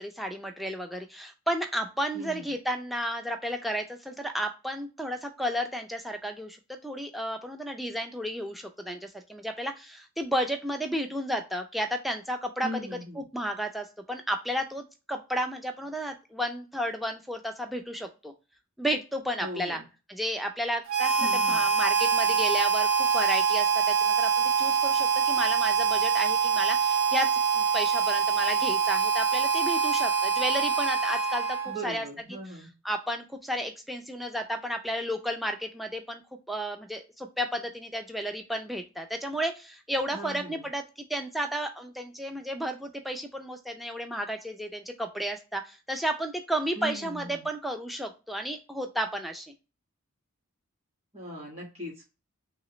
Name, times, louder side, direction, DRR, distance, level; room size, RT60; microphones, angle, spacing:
voice 1, 0.0-6.6 6.8-18.3 18.8-19.8 20.1-32.1 32.5-36.2 36.5-49.5, equal, ahead, 4 dB, 0.4 m, -33 dB
voice 2, 2.1-2.5 12.6-13.2 19.4-19.8 21.2-21.7 31.7-32.7 40.1-40.7 46.8-47.4 51.1-52.0, equal, 30° right, -2 dB, 1.6 m, -39 dB
Harmonica, 20.9-31.9, right 6 dB, 75° right, 0.6 m, -25 dB
3.2 x 3.0 x 2.9 m, 0.30 s
head